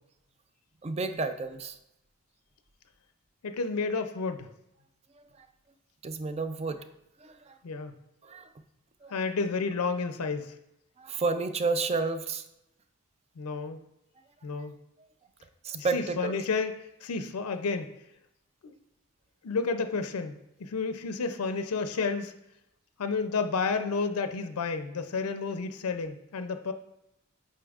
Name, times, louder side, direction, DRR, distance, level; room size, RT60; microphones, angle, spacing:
voice 1, 0.8-1.7 6.0-6.9 7.2-7.6 8.2-8.5 9.0-9.1 11.0-12.4 15.6-16.3, right 4 dB, 30° right, 10 dB, 0.4 m, -31 dB
voice 2, 3.4-4.5 7.6-7.9 9.1-10.5 13.4-13.8 14.4-14.7 15.7-17.9 18.6-18.7 19.4-22.3 23.0-26.7, left 4 dB, 85° left, 8 dB, 0.5 m, -31 dB
8.5 x 5.4 x 2.4 m, 0.85 s
head